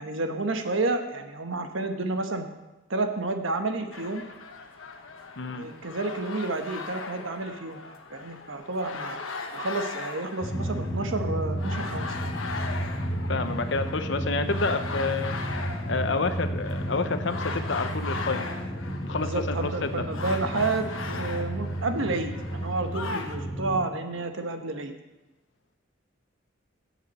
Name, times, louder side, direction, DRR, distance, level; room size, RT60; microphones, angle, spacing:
voice 1, 0.0-2.5 2.9-4.2 5.5-7.8 8.1-9.2 9.5-12.2 19.2-24.9, right 3 dB, 75° right, 6 dB, 1.1 m, -30 dB
sound 1, 3.9-23.4, left 4 dB, 80° left, 1.2 m, -39 dB
voice 2, 5.4-5.7 13.3-15.4 15.9-18.5 19.0-19.9, left 3 dB, 65° left, 9 dB, 0.8 m, -29 dB
Drum, 10.4-23.8, right 1 dB, 15° left, 1.1 m, -32 dB
16.0 x 7.3 x 4.2 m, 1.1 s
head